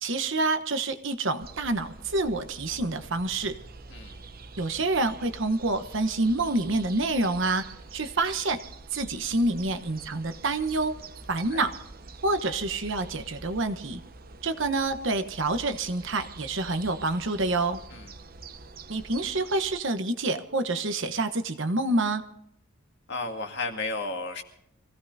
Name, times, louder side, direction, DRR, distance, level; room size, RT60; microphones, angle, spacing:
voice 1, 0.0-3.5 4.6-7.6 7.9-8.6 8.9-11.0 11.3-11.8 12.2-14.0 14.4-17.8 18.9-22.2, right 2 dB, 65° right, 8 dB, 1.1 m, -27 dB
sound 1, 1.4-19.8, right 3 dB, 45° right, 0.8 m, -46 dB
voice 2, 11.3-11.7 17.9-18.1 23.1-24.4, left 3 dB, 55° left, 4 dB, 2.1 m, -33 dB
26.0 x 17.0 x 2.7 m, 0.77 s
head